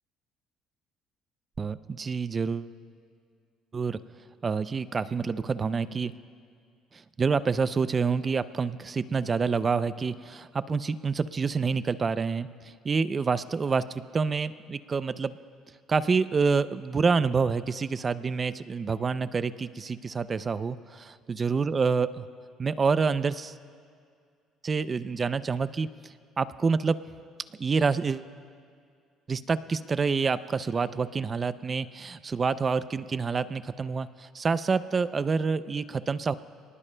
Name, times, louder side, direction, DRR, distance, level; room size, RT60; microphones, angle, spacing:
voice 1, 1.6-2.7 3.7-4.0 4.4-6.1 6.9-15.4 15.9-22.2 22.6-23.5 24.6-27.0 27.6-28.3 29.3-36.3, right 5 dB, 25° right, 14 dB, 0.4 m, -27 dB
27.5 x 19.5 x 2.2 m, 2.2 s
cardioid pair, 130°, 0 cm